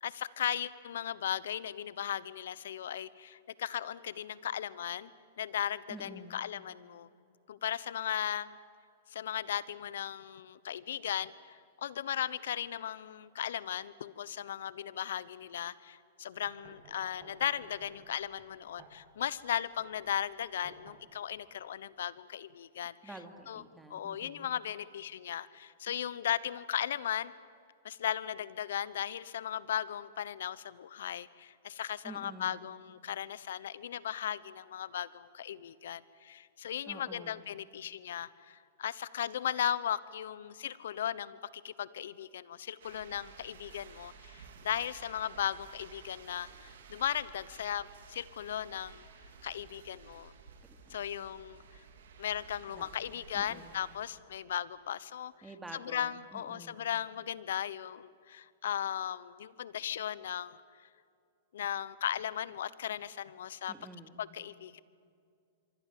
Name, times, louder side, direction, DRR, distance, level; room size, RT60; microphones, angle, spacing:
voice 1, 0.0-5.1 5.4-7.1 7.5-8.6 9.1-22.9 23.5-23.6 23.9-27.3 27.8-41.4 41.6-49.0 49.4-50.3 50.9-51.6 52.2-55.3 55.7-60.6 61.5-63.7 64.2-64.8, left 10 dB, 75° left, 18 dB, 1.0 m, -37 dB
voice 2, 5.9-6.4 23.0-24.5 32.0-32.7 36.9-37.4 50.9-51.0 52.7-53.7 55.4-56.8 63.7-64.2, right 2 dB, 10° right, 5 dB, 2.8 m, -49 dB
sound 1, 16.5-21.5, right 3 dB, 35° right, 7.2 m, -57 dB
sound 2, 42.8-54.0, right 6 dB, 75° right, 4.1 m, -54 dB
26.5 x 24.0 x 7.7 m, 2.4 s
hypercardioid pair, 130°, 0 cm